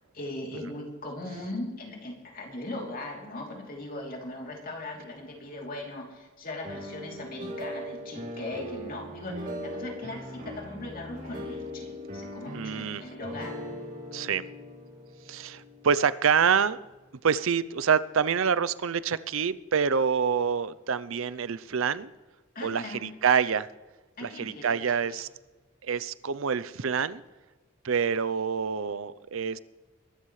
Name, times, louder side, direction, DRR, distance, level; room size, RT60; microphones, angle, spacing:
voice 1, 0.1-13.8 22.5-23.1 24.2-25.2, left 2 dB, 40° left, 0 dB, 3.1 m, -39 dB
sound 1, 6.6-16.6, equal, 40° right, 2.4 m, -40 dB
voice 2, 12.5-13.0 14.1-14.5 15.3-16.8 17.2-22.1 22.6-23.7 24.2-25.3 25.8-27.2 27.8-29.6, right 6 dB, 65° right, 17 dB, 0.6 m, -26 dB
22.5 x 13.0 x 3.2 m, 1.2 s
head